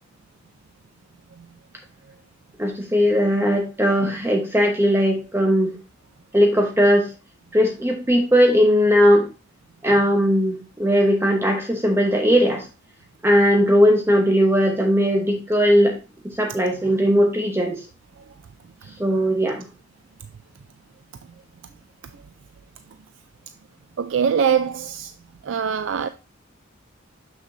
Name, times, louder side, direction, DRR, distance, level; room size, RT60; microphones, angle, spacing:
voice 1, 2.6-5.7 6.3-7.1 7.5-9.3 9.8-12.6 13.2-16.0 16.4-17.8 19.0-19.7, equal, 10° right, 1.0 m, -18 dB
voice 2, 24.0-25.1 25.5-26.1, right 7 dB, 65° right, 0.4 m, -22 dB
6.7 x 6.3 x 2.7 m
head